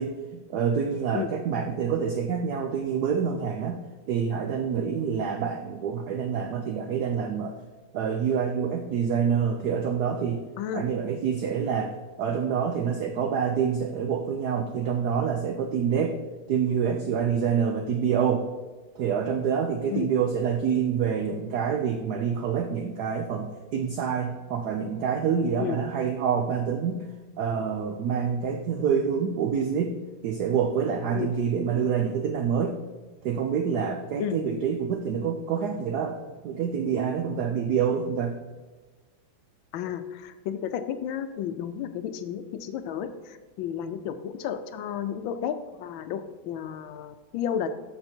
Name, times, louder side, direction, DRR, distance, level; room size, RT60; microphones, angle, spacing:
voice 1, 0.0-3.8 4.1-7.5 7.9-10.4 10.7-16.2 16.5-18.5 18.9-27.0 27.4-30.0 30.2-32.8 33.2-38.4, right 7 dB, 85° right, 5 dB, 0.8 m, -27 dB
voice 2, 39.7-47.7, left 9 dB, 75° left, 10 dB, 1.3 m, -32 dB
12.5 x 4.2 x 4.4 m, 1.3 s
omnidirectional pair, 2.4 m